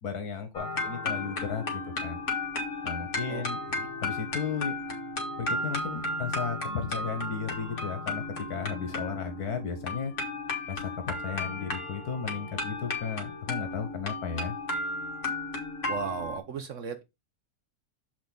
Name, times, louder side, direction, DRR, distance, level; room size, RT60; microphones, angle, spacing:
voice 1, 0.0-2.2 2.8-3.6 4.0-4.7 5.4-10.1 10.7-14.5, left 6 dB, 85° left, 1.6 m, -34 dB
sound 1, 0.5-16.4, left 2 dB, 50° left, 1.9 m, -34 dB
voice 2, 15.9-17.0, right 6 dB, 60° right, 1.0 m, -35 dB
7.1 x 5.1 x 3.8 m
omnidirectional pair, 1.6 m